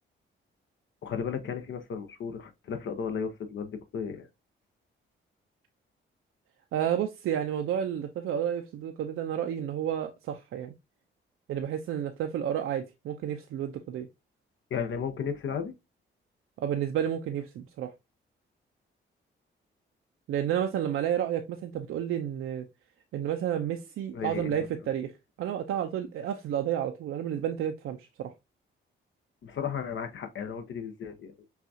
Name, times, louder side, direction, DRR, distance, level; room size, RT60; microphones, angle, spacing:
voice 1, 1.0-4.3 14.7-15.7 24.1-24.7 29.4-31.3, left 6 dB, 65° left, 0.7 m, -34 dB
voice 2, 6.7-10.7 11.5-14.1 16.6-17.9 20.3-22.7 23.1-25.1 25.4-28.3, right 10 dB, 80° right, 0.5 m, -31 dB
5.6 x 2.4 x 2.6 m
cardioid pair, 80°, 21 cm